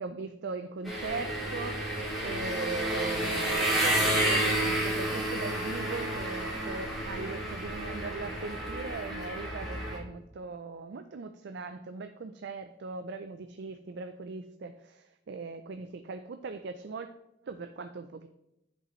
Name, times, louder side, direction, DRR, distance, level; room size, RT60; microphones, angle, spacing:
voice 1, 0.0-1.9 2.2-17.1 17.4-18.3, right 4 dB, 60° right, 8 dB, 0.4 m, -39 dB
sound 1, 0.9-10.0, right 1 dB, ahead, 2.4 m, -30 dB
10.5 x 5.3 x 3.1 m, 0.84 s
head